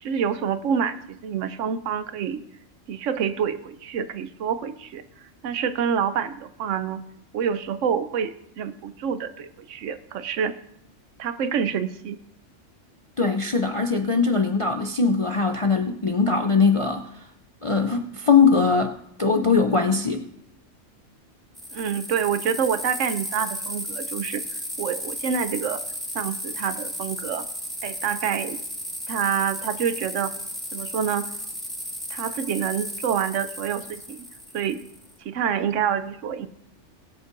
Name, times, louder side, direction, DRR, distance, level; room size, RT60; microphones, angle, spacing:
voice 1, 0.0-2.4 2.9-5.0 5.4-7.0 7.3-10.6 11.2-12.2 21.7-24.4 24.8-25.8 26.1-27.4 27.8-28.6 29.1-30.3 30.7-31.3 32.1-34.2 34.5-34.8 35.2-36.5, right 7 dB, 75° right, 12 dB, 1.0 m, -27 dB
voice 2, 13.2-17.3 17.6-20.3, left 5 dB, 45° left, 5 dB, 0.4 m, -21 dB
sound 1, 21.6-35.1, equal, ahead, 1.2 m, -34 dB
20.5 x 8.1 x 2.6 m, 0.76 s
omnidirectional pair, 1.3 m